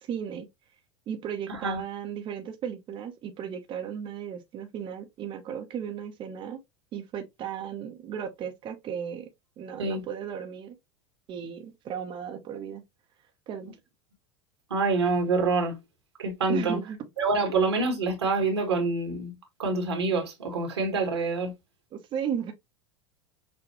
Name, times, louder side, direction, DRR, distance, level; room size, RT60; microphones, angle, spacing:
voice 1, 0.0-0.5 1.1-6.6 6.9-9.3 9.6-10.8 11.3-12.8 13.5-13.8 16.5-17.0 21.9-22.5, right 8 dB, 40° right, 0.8 m, -35 dB
voice 2, 14.7-15.8 16.2-16.8 17.2-19.3 19.6-21.5, right 3 dB, 85° right, 1.7 m, -26 dB
6.1 x 2.2 x 2.9 m
hypercardioid pair, 90°, 13 cm